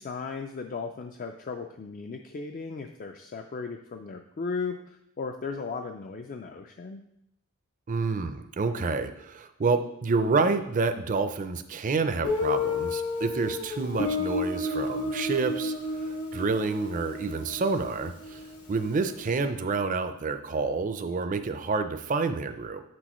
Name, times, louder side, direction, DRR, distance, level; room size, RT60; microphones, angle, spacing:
voice 1, 0.0-7.0, left 4 dB, 40° left, 4 dB, 0.3 m, -36 dB
voice 2, 7.9-18.4 18.7-22.8, right 4 dB, 35° right, 9 dB, 0.5 m, -28 dB
Guitar, 12.2-18.9, left 3 dB, 85° left, 1.8 m, -31 dB
8.2 x 6.1 x 3.0 m, 0.79 s
head